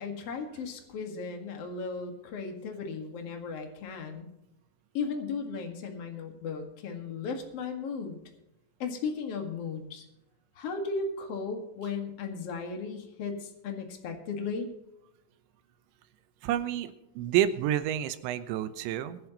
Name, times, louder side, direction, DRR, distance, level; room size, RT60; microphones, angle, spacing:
voice 1, 0.0-4.3 4.9-8.2 8.8-10.0 10.6-14.7, left 4 dB, 50° left, 4 dB, 1.9 m, -36 dB
voice 2, 16.4-19.2, right 11 dB, 90° right, 11 dB, 3.2 m, -29 dB
23.0 x 11.0 x 3.0 m, 0.90 s
omnidirectional pair, 5.2 m